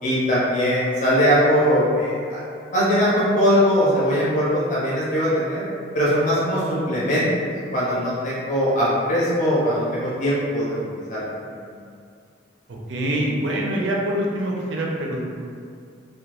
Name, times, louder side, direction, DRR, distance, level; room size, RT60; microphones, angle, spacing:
voice 1, 0.0-2.4 2.7-5.6 5.9-7.3 7.7-10.8 11.1-11.3, equal, 40° left, -8 dB, 0.5 m, -20 dB
voice 2, 12.7-15.3, right 1 dB, 75° right, -2 dB, 0.5 m, -25 dB
2.3 x 2.2 x 2.9 m, 2.3 s
head